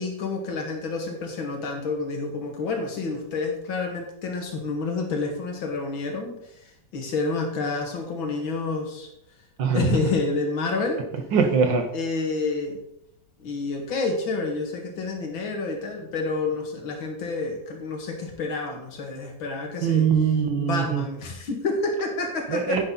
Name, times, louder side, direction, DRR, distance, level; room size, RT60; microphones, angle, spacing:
voice 1, 0.0-6.4 6.9-9.1 9.7-11.0 11.9-12.8 13.4-20.1 20.6-22.8, left 3 dB, 85° left, 3 dB, 2.7 m, -29 dB
voice 2, 9.6-10.0 11.3-11.9 19.8-21.0 22.5-22.8, right 6 dB, 70° right, 6 dB, 2.0 m, -22 dB
10.0 x 9.4 x 4.0 m, 0.76 s
omnidirectional pair, 2.1 m